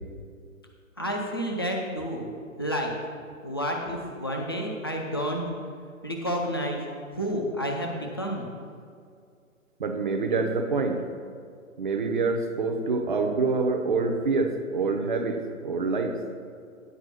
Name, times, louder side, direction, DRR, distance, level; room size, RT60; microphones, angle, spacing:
voice 1, 1.0-2.3 2.6-2.9 3.4-5.4 6.0-6.9 7.1-8.5, equal, 20° left, 0 dB, 0.4 m, -30 dB
voice 2, 9.8-11.0 11.8-16.2, right 4 dB, 35° right, 5 dB, 0.7 m, -26 dB
9.7 x 4.7 x 5.6 m, 2.2 s
figure-of-eight pair, 130°, 41 cm